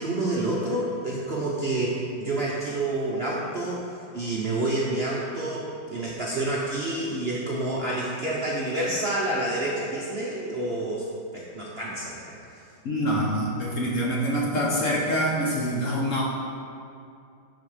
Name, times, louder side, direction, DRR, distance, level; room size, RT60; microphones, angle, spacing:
voice 1, 0.0-11.1 11.3-12.6, right 2 dB, 45° right, -5 dB, 0.8 m, -28 dB
voice 2, 12.8-16.2, equal, 55° left, -3 dB, 1.0 m, -25 dB
10.0 x 4.3 x 4.9 m, 2.5 s
omnidirectional pair, 2.0 m